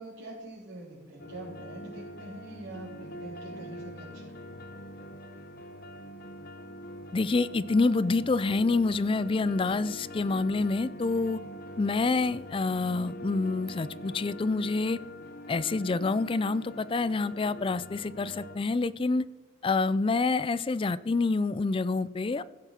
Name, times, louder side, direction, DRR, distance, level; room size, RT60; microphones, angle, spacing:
voice 1, 0.0-4.7, right 2 dB, 70° right, -9 dB, 3.8 m, -44 dB
sound 1, 1.2-18.6, left 1 dB, 50° left, 0.8 m, -44 dB
voice 2, 7.1-11.4 11.8-15.0 15.5-19.2 19.6-22.4, left 3 dB, 30° left, 17 dB, 0.4 m, -27 dB
15.0 x 6.9 x 5.8 m, 1.2 s
head